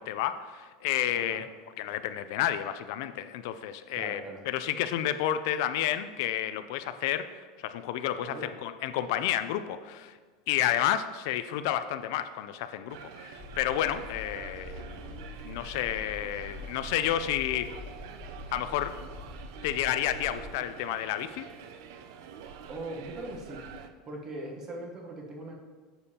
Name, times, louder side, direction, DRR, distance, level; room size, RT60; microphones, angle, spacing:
voice 1, 0.0-1.5 1.8-7.3 7.6-8.3 8.6-10.2 10.5-17.7 18.5-18.9 19.6-21.5, left 11 dB, 60° left, 11 dB, 0.3 m, -31 dB
voice 2, 1.1-1.4 4.0-4.4 8.2-8.5 22.7-23.6 24.1-25.5, right 1 dB, 20° right, 1 dB, 1.0 m, -40 dB
sound 1, 12.9-23.9, right 7 dB, 60° right, 0.6 m, -47 dB
sound 2, 13.4-20.5, left 1 dB, 10° left, 0.8 m, -44 dB
9.7 x 6.9 x 2.8 m, 1.5 s
supercardioid pair, 180°, 2 cm